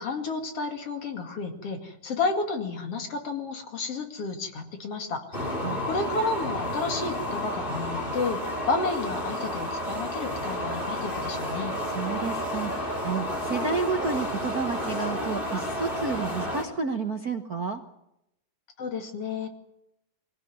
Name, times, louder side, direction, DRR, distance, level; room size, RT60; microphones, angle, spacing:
voice 1, 0.0-5.4 5.8-8.4 8.7-11.7 18.8-19.5, left 3 dB, 50° left, 5 dB, 3.0 m, -31 dB
sound 1, 5.3-16.6, left 1 dB, 15° left, 4.1 m, -31 dB
voice 2, 11.9-17.8, right 4 dB, 60° right, 5 dB, 0.9 m, -31 dB
23.5 x 18.0 x 9.5 m, 0.82 s
omnidirectional pair, 3.6 m